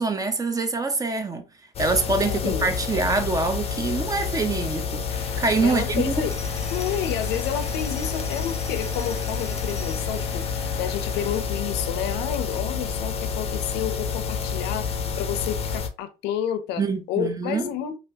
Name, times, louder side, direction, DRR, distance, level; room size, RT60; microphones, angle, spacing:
voice 1, 0.0-1.4 1.8-6.1 16.8-17.7, right 3 dB, 20° right, 0.5 m, -25 dB
sound 1, 1.7-15.9, left 6 dB, 35° left, 0.5 m, -29 dB
voice 2, 2.1-2.8 5.6-6.3 6.7-10.4 10.8-14.9 15.2-16.8 17.1-18.0, left 10 dB, 90° left, 0.5 m, -30 dB
sound 2, 5.1-11.4, left 2 dB, 20° left, 0.9 m, -41 dB
3.3 x 2.4 x 2.7 m
cardioid pair, 110°, 17 cm